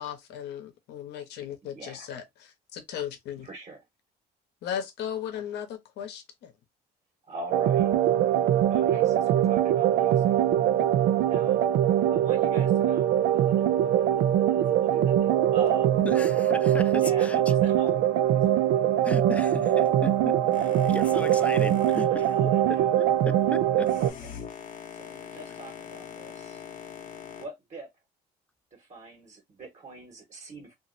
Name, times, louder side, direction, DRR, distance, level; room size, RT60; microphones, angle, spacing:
voice 1, 0.0-3.5 4.6-6.5, left 9 dB, 80° left, 0.8 m, -36 dB
voice 2, 1.7-2.1 3.4-3.8 7.2-7.9 8.7-10.3 11.3-11.6 12.1-16.1 17.0-18.8 21.1-21.5 22.1-22.9 24.0-24.4 24.9-26.6 27.4-27.9 28.7-30.7, right 2 dB, 45° right, 1.2 m, -43 dB
sound 1, 7.5-24.1, right 11 dB, 75° right, 0.4 m, -23 dB
voice 3, 16.0-17.4 19.0-22.3 22.7-23.9, left 3 dB, 10° left, 0.4 m, -36 dB
Boat Water vehicle, 20.5-27.5, left 8 dB, 50° left, 0.8 m, -43 dB
2.9 x 2.5 x 2.5 m
cardioid pair, 110°, 17 cm